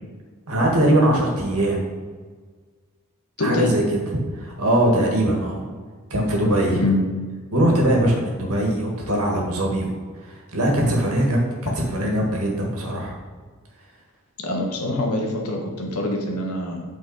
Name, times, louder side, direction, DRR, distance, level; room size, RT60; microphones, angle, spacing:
voice 1, 0.5-1.8 3.4-5.6 6.1-6.8 7.5-9.9 10.5-13.2, right 1 dB, 70° right, 0 dB, 1.8 m, -21 dB
voice 2, 3.4-3.7 6.7-7.0 14.4-16.8, left 1 dB, 80° left, 0 dB, 1.5 m, -24 dB
8.6 x 4.6 x 4.2 m, 1.5 s
head